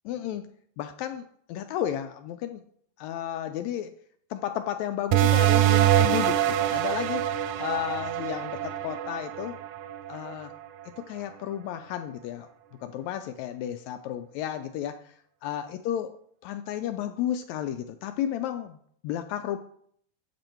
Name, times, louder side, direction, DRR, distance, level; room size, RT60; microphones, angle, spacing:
voice 1, 0.1-0.4 0.8-2.6 3.0-3.9 4.3-9.6 10.1-10.5 11.0-12.5 12.8-15.0 15.4-16.2 16.4-18.8 19.0-19.6, left 11 dB, 80° left, 8 dB, 1.6 m, -33 dB
sound 1, 5.1-10.3, right 13 dB, 80° right, 1.8 m, -24 dB
7.9 x 7.8 x 4.4 m, 0.64 s
omnidirectional pair, 3.6 m